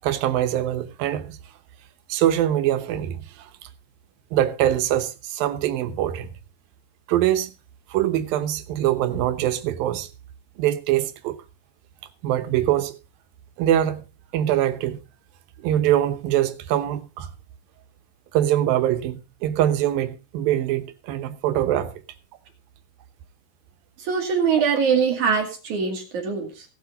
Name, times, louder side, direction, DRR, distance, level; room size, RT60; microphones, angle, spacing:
voice 1, 0.0-1.4 2.1-3.7 4.3-6.3 7.1-7.5 7.9-10.1 10.6-11.4 12.2-13.0 13.6-14.0 14.3-15.0 15.6-17.3 18.3-21.9, right 12 dB, 90° right, 2.8 m, -23 dB
voice 2, 24.0-26.7, right 6 dB, 60° right, 3.0 m, -23 dB
17.5 x 7.8 x 4.1 m
omnidirectional pair, 4.0 m